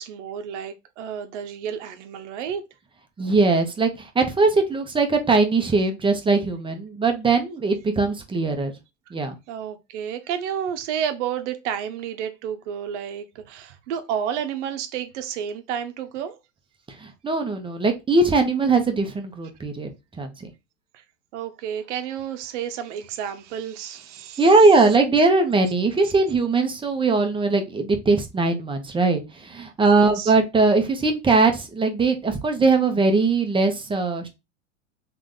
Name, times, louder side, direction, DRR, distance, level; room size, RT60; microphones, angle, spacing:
voice 1, 0.0-2.6 9.5-16.4 20.9-21.0 21.3-24.5 29.9-30.3, right 8 dB, 65° right, 1.0 m, -31 dB
voice 2, 3.2-8.7 9.1-9.3 17.0-19.9 20.2-20.5 24.4-34.3, right 3 dB, 15° right, 0.9 m, -20 dB
3.6 x 3.4 x 3.8 m
hypercardioid pair, 115°, 38 cm